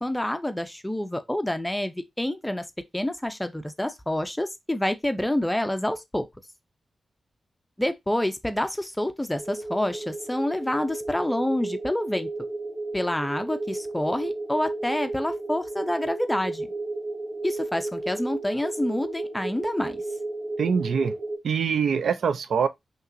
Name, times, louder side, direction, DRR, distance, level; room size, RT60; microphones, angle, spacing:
voice 1, 0.0-2.7 2.9-6.2 7.8-12.3 12.9-16.7 17.4-20.0, left 1 dB, 5° left, 0.4 m, -28 dB
sound 1, 9.4-21.4, right 2 dB, 25° right, 1.7 m, -33 dB
voice 2, 20.6-21.1 21.4-22.7, right 6 dB, 85° right, 0.4 m, -24 dB
5.6 x 3.0 x 2.5 m
wide cardioid pair, 180°, 0 cm